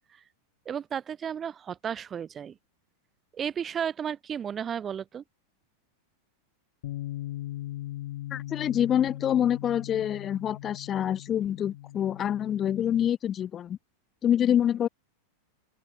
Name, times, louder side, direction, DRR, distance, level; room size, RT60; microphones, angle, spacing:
voice 1, 0.7-2.5 3.3-5.2, right 8 dB, 25° right, 0.6 m, -33 dB
Bass guitar, 6.8-13.1, left 14 dB, 55° left, 0.8 m, -39 dB
voice 2, 8.3-13.8 14.2-14.9, left 10 dB, 25° left, 1.2 m, -26 dB
open air
figure-of-eight pair, 90°, 0 cm